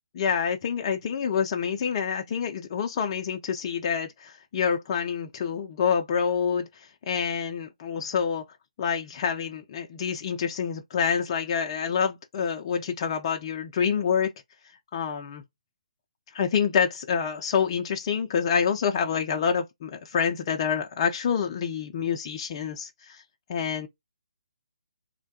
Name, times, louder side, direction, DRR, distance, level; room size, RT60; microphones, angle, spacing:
voice 1, 0.1-8.4 8.8-14.3 14.9-15.4 16.3-23.2 23.5-23.9, left 7 dB, 40° left, 0.4 m, -27 dB
3.2 x 2.1 x 2.6 m
figure-of-eight pair, 145°, 4 cm